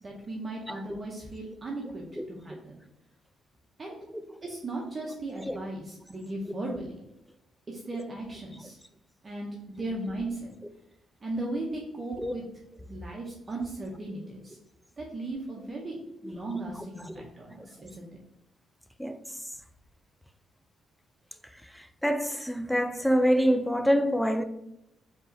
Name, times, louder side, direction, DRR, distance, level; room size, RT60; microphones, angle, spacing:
voice 1, 0.0-2.8 3.8-4.0 4.4-7.0 7.7-8.8 9.2-9.5 9.8-10.5 11.2-12.4 12.9-14.6 15.0-18.1, right 2 dB, 30° right, 0.7 m, -37 dB
voice 2, 21.7-24.4, equal, ahead, 0.3 m, -26 dB
4.6 x 2.9 x 2.6 m
cardioid pair, 90°, 0 cm